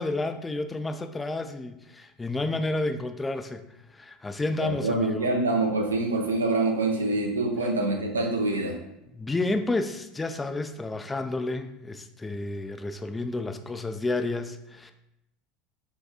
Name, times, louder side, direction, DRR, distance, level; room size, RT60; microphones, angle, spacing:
voice 1, 0.0-3.7 3.9-5.4 9.1-14.9, left 2 dB, 15° left, 8 dB, 0.3 m, -30 dB
voice 2, 4.6-8.8, right 2 dB, 90° right, 2 dB, 0.5 m, -25 dB
4.3 x 2.3 x 2.9 m, 0.88 s
hypercardioid pair, 75°, 0 cm